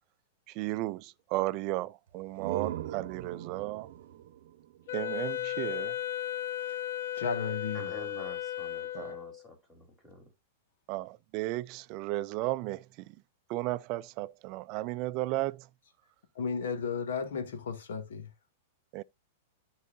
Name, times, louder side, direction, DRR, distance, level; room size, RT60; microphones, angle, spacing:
voice 1, 0.5-3.9 4.9-6.0 8.9-9.2 10.9-13.1 13.5-15.7 18.9-19.0, right 18 dB, 40° right, 0.4 m, -34 dB
sound 1, 2.1-5.8, right 12 dB, 65° right, 0.8 m, -40 dB
Wind instrument woodwind instrument, 4.9-9.4, left 12 dB, 65° left, 0.9 m, -35 dB
voice 2, 7.2-7.8 16.4-18.3, left 5 dB, 85° left, 2.3 m, -34 dB
voice 3, 7.7-10.3, left 1 dB, 5° left, 3.8 m, -47 dB
14.0 x 4.7 x 2.7 m
supercardioid pair, 150°, 0 cm